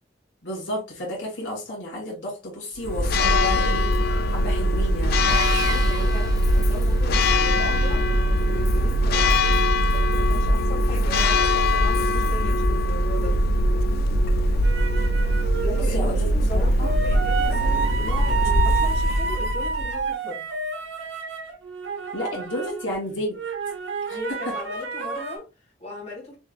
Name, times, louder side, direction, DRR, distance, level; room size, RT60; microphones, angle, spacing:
voice 1, 0.4-5.4 15.8-16.9 22.1-23.4 24.1-24.2 24.4-24.5, equal, 75° left, 2.4 m, -32 dB
Church bell, 2.8-20.0, equal, 55° left, 0.4 m, -21 dB
Sawing, 5.3-7.2, right 4 dB, 20° right, 0.4 m, -34 dB
voice 2, 5.6-8.0 8.4-13.4 14.8-15.1 15.6-20.5 24.1-26.4, left 1 dB, 35° left, 2.5 m, -37 dB
sound 1, 14.6-15.9 16.8-23.0 23.4-25.4, right 5 dB, 75° right, 1.0 m, -29 dB
6.2 x 2.5 x 2.4 m
head